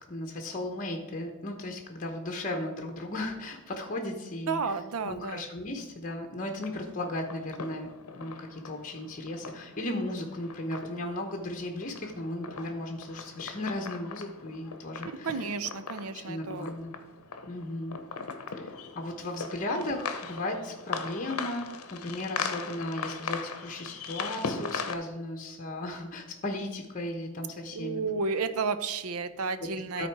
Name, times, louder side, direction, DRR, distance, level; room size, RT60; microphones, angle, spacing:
voice 1, 0.0-4.8 5.0-15.5 16.1-16.9 17.5-18.0 18.6-28.1 29.6-29.7 30.0-30.1, left 1 dB, 35° left, 3 dB, 0.9 m, -36 dB
voice 2, 4.5-5.4 15.2-16.7 27.7-30.1, right 4 dB, 75° right, 12 dB, 0.6 m, -32 dB
sound 1, 6.6-24.9, left 5 dB, 75° left, 0.8 m, -40 dB
13.0 x 4.3 x 4.7 m, 1.1 s
head